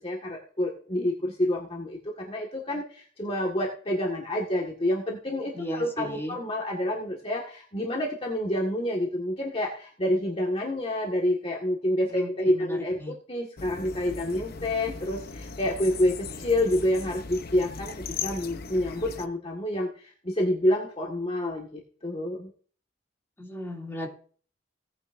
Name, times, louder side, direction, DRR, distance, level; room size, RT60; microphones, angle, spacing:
voice 1, 0.0-22.5, left 1 dB, 30° left, -1 dB, 1.8 m, -28 dB
voice 2, 5.5-6.4 12.1-13.1 23.4-24.1, equal, 15° left, -1 dB, 2.7 m, -36 dB
sound 1, 13.6-19.3, left 5 dB, 55° left, 0.8 m, -38 dB
17.5 x 9.7 x 2.6 m, 0.43 s
head